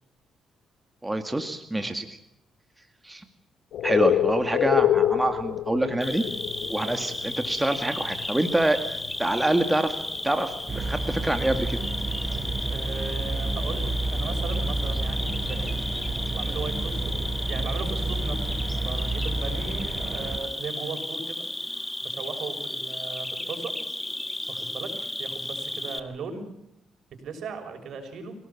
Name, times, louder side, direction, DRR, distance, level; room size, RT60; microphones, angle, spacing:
voice 1, 1.0-2.2 3.0-3.2 3.8-6.2 6.7-8.8 9.2-11.8, right 1 dB, 10° right, 6 dB, 2.1 m, -26 dB
sound 1, 3.7-8.3 8.6-9.5 9.8-10.8, left 11 dB, 75° left, 0.8 m, -27 dB
Cricket, 6.0-26.0, left 1 dB, 10° left, 2.0 m, -34 dB
sound 2, 10.7-20.4, right 2 dB, 30° right, 6.3 m, -30 dB
voice 2, 12.7-15.7 16.3-18.5 18.8-21.4 22.0-23.7 24.5-26.4 27.2-28.3, right 4 dB, 65° right, 6 dB, 6.4 m, -37 dB
26.0 x 18.0 x 7.2 m, 0.84 s
cardioid pair, 90°, 0 cm